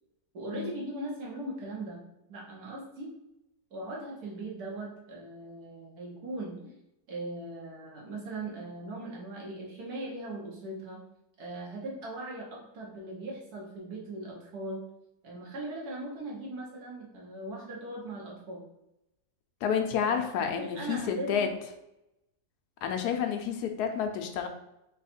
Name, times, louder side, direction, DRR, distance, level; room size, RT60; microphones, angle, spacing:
voice 1, 0.3-2.0 2.3-3.1 3.7-6.6 7.1-11.0 11.4-14.8 15.2-18.6 20.1-21.4 23.0-23.1, right 2 dB, 70° right, -3 dB, 1.6 m, -39 dB
voice 2, 19.6-21.5 22.8-24.5, left 7 dB, 80° left, 5 dB, 1.1 m, -30 dB
4.0 x 2.3 x 4.2 m, 0.86 s
omnidirectional pair, 1.7 m